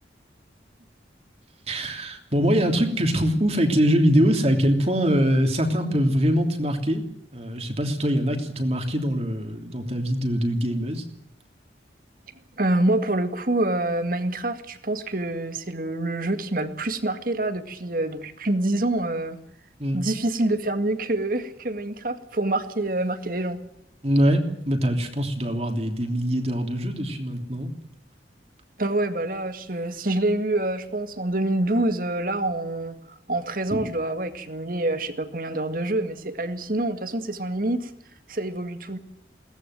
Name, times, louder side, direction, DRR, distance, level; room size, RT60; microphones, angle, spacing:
voice 1, 1.7-7.0 7.3-11.0 19.8-20.0 24.0-27.7 33.7-33.9, equal, 35° right, 4 dB, 3.2 m, -23 dB
voice 2, 12.6-19.4 19.9-23.6 28.8-33.0 33.3-37.9 38.3-39.0, right 2 dB, 50° right, 9 dB, 2.1 m, -26 dB
22.0 x 18.5 x 7.8 m, 0.77 s
head